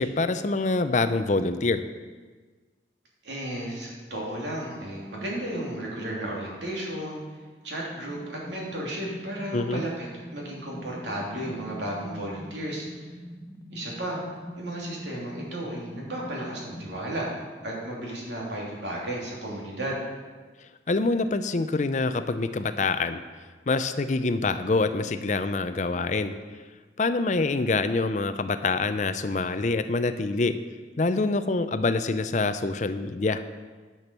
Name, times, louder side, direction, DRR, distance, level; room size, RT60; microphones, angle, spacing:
voice 1, 0.0-1.8 9.5-9.8 20.9-23.2 23.7-26.3 27.0-30.6 31.0-33.4, left 3 dB, 40° left, 11 dB, 0.5 m, -25 dB
voice 2, 3.2-7.2 7.6-13.1 13.7-14.2 14.5-17.3 17.6-20.0, right 1 dB, 80° right, -3 dB, 3.0 m, -34 dB
sound 1, 8.0-17.0, equal, 20° left, 0.9 m, -43 dB
11.0 x 6.1 x 6.8 m, 1.4 s
head